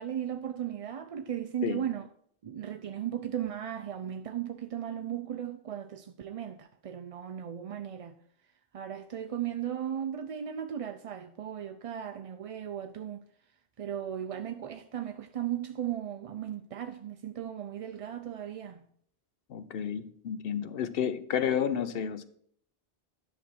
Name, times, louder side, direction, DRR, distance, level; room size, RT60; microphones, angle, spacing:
voice 1, 0.0-2.1 2.4-8.2 8.7-13.2 13.8-18.8, right 10 dB, 50° right, 0.4 m, -36 dB
voice 2, 19.5-22.2, left 8 dB, 70° left, 0.9 m, -31 dB
10.5 x 6.2 x 4.3 m
omnidirectional pair, 1.0 m